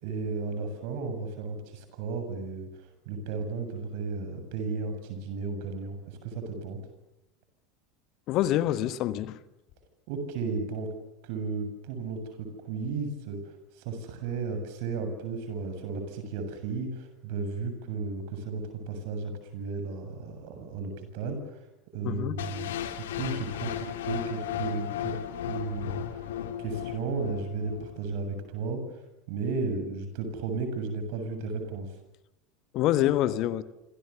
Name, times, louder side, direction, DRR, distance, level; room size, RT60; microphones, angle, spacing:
voice 1, 0.0-2.7 3.1-6.8 10.1-10.9 11.2-13.4 13.8-21.6 21.9-25.2 25.5-26.2 26.6-28.8 29.3-31.9, right 4 dB, 55° right, 7 dB, 7.2 m, -34 dB
voice 2, 8.3-9.4 22.0-22.4 32.7-33.6, left 13 dB, 50° left, 14 dB, 1.3 m, -26 dB
sound 1, 22.4-28.4, left 10 dB, 65° left, 2.3 m, -35 dB
27.5 x 27.0 x 7.0 m, 0.86 s
figure-of-eight pair, 75°, 0 cm